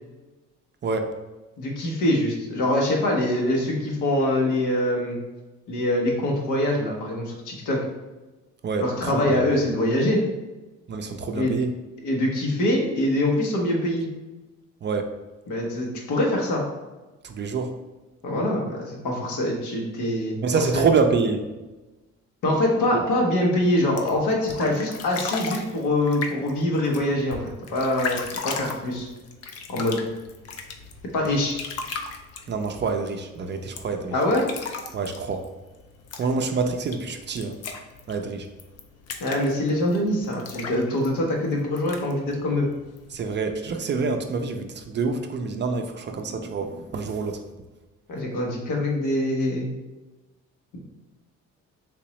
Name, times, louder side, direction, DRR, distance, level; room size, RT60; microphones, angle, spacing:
voice 1, 1.6-5.2 5.7-7.8 8.8-10.2 11.3-11.6 12.0-14.1 15.5-16.6 18.2-20.4 20.7-20.8 22.4-29.1 29.7-30.0 31.1-31.6 34.1-34.5 39.2-42.7 48.1-49.7 50.7-50.8, left 1 dB, 85° left, -1 dB, 0.9 m, -24 dB
voice 2, 8.6-9.4 10.9-11.7 14.8-15.1 17.2-17.7 20.4-21.4 32.5-34.1 34.9-35.4 36.2-37.6 38.1-38.5 43.1-47.4, right 4 dB, 40° right, 6 dB, 0.4 m, -26 dB
sound 1, 23.8-43.4, left 5 dB, 55° left, 0.5 m, -38 dB
3.5 x 2.9 x 3.0 m, 1.1 s
cardioid pair, 90°, 30 cm